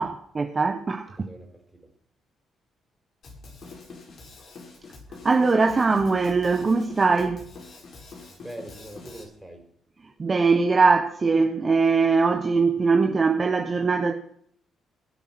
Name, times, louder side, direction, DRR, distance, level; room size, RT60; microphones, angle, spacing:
voice 1, 0.0-1.3 5.2-7.5 10.2-14.1, right 4 dB, 30° right, 1.3 m, -21 dB
voice 2, 1.2-1.9 8.4-9.8, right 1 dB, 5° right, 5.2 m, -43 dB
Drum kit, 3.2-9.2, left 3 dB, 50° left, 7.1 m, -45 dB
22.0 x 8.1 x 6.2 m
cardioid pair, 90°, 0 cm